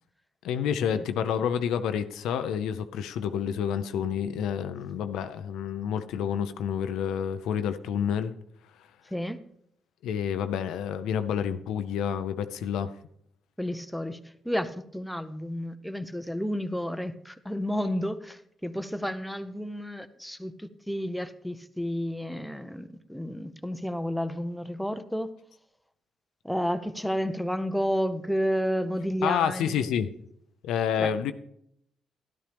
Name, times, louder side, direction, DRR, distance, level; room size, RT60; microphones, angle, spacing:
voice 1, 0.4-8.3 10.0-12.9 29.2-30.1 30.6-31.3, left 8 dB, 85° left, 0.6 m, -29 dB
voice 2, 9.1-9.4 13.6-25.3 26.4-29.9 31.0-31.1, equal, ahead, 0.7 m, -31 dB
13.0 x 11.5 x 3.4 m
cardioid pair, 90°, 0 cm